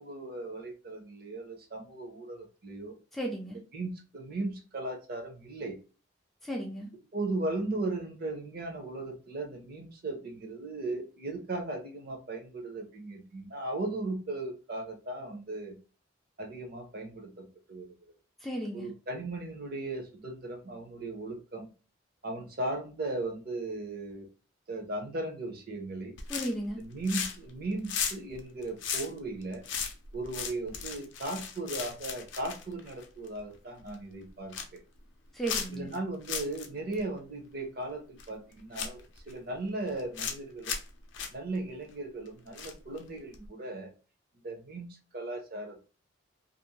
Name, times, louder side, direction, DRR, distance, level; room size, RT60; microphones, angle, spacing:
voice 1, 0.0-2.9 3.5-5.8 7.1-15.8 16.4-17.9 18.7-21.7 22.2-24.3 24.7-26.2 26.8-29.6 30.1-34.8 35.7-39.0 39.3-40.7 41.3-43.9 44.4-44.9 45.1-45.8, right 2 dB, 50° right, 3 dB, 0.7 m, -37 dB
voice 2, 3.1-3.6 6.4-6.9 18.4-18.9 26.3-26.8 35.3-35.9, right 1 dB, ahead, -2 dB, 0.4 m, -34 dB
sound 1, 26.2-26.7 27.0-27.5 27.8-33.4 33.8-33.9 34.3-34.8 35.4-36.0 36.2-36.7 36.9-37.0 38.2-38.3 38.7-39.3 39.9-40.4 40.6-40.9 41.1-41.3 42.5-43.0 43.3-43.5, left 7 dB, 65° left, 0.5 m, -36 dB
2.5 x 2.0 x 2.8 m, 0.35 s
head